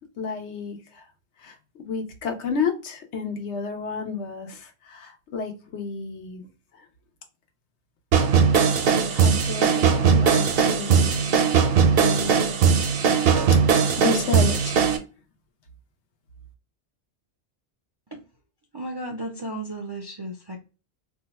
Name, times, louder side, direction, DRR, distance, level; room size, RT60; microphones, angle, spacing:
voice 1, 0.2-1.0 1.4-1.6 1.8-6.4 9.1-11.4 12.0-12.4 13.7-14.9, left 5 dB, 85° left, 4 dB, 1.1 m, -31 dB
sound 1, 8.1-15.0, right 6 dB, 65° right, 0.7 m, -19 dB
voice 2, 18.7-20.6, right 1 dB, 40° right, -1 dB, 0.3 m, -34 dB
2.7 x 2.2 x 4.0 m, 0.34 s
omnidirectional pair, 1.1 m